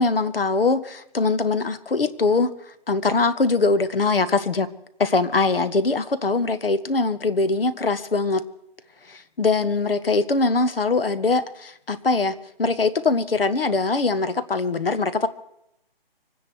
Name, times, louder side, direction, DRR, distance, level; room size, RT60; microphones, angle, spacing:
voice 1, 0.0-4.7 5.0-8.4 9.1-15.3, left 3 dB, 65° left, 12 dB, 1.5 m, -22 dB
25.0 x 10.0 x 4.7 m, 0.80 s
hypercardioid pair, 180°, 30 cm